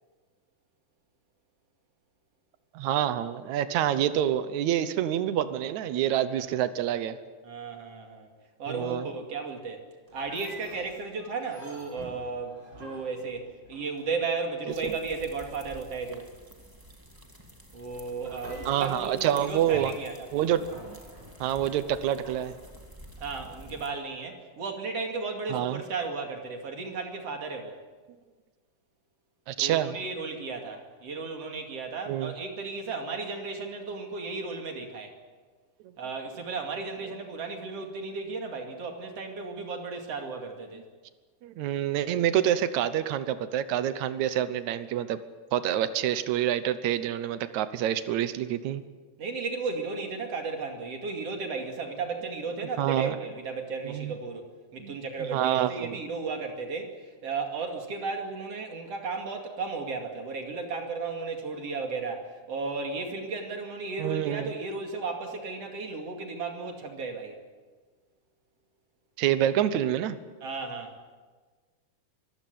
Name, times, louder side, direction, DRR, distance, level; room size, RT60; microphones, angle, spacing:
voice 1, 2.7-7.2 8.7-9.1 14.8-14.9 18.7-19.9 20.3-21.0 21.4-22.6 25.5-25.8 29.5-30.0 32.1-32.3 41.4-45.2 45.5-48.8 52.8-53.2 53.8-54.1 54.8-56.0 64.0-64.5 69.2-70.2, right 11 dB, 80° right, 12 dB, 1.6 m, -27 dB
voice 2, 7.4-8.3 8.6-9.8 10.1-16.3 17.7-20.1 23.2-27.8 29.6-35.1 36.0-40.8 49.2-54.5 54.7-56.9 57.2-67.4 70.4-70.9, right 4 dB, 45° right, 4 dB, 3.0 m, -34 dB
sound 1, 10.1-14.4 18.1-23.2, equal, 25° right, 6.4 m, -48 dB
sound 2, 14.7-23.9, equal, 10° right, 1.4 m, -50 dB
24.5 x 15.5 x 9.5 m, 1.4 s
omnidirectional pair, 4.5 m